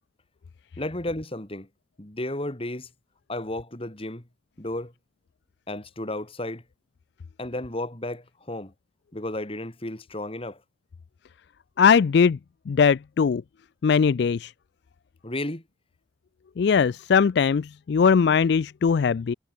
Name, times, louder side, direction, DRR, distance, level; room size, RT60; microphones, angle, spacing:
voice 1, 0.8-1.7 2.0-2.9 3.3-4.2 4.6-4.9 5.7-6.6 7.4-8.7 9.1-10.6 15.2-15.6, left 1 dB, 30° left, 2.1 m, -33 dB
voice 2, 11.8-12.4 12.7-13.4 13.8-14.5 16.6-19.3, left 6 dB, 60° left, 0.3 m, -20 dB
head